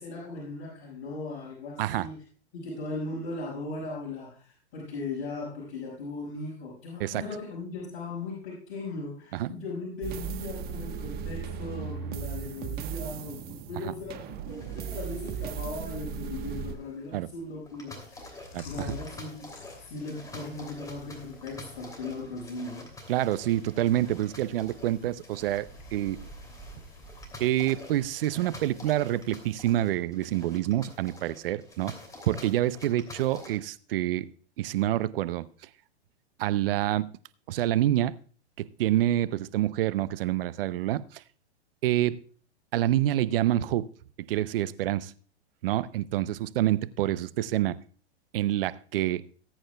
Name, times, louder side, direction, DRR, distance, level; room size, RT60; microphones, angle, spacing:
voice 1, 0.0-2.2 2.5-19.5 19.8-22.9, left 3 dB, 50° left, -7 dB, 5.4 m, -38 dB
sound 1, 10.0-16.8, right 7 dB, 30° right, 1.1 m, -36 dB
sound 2, 14.5-33.6, left 1 dB, 10° left, 2.8 m, -48 dB
Chewing mastication, 18.0-29.8, left 4 dB, 65° left, 5.7 m, -50 dB
voice 2, 18.5-18.9 23.1-26.2 27.4-31.9 32.3-34.3 34.6-35.5 36.4-37.1 37.5-38.1 38.8-41.2 41.8-42.2 42.7-43.8 44.3-45.1 45.6-47.7 48.3-49.2, right 13 dB, 60° right, 16 dB, 0.7 m, -27 dB
19.0 x 8.8 x 2.3 m, 0.42 s
hypercardioid pair, 120°, 33 cm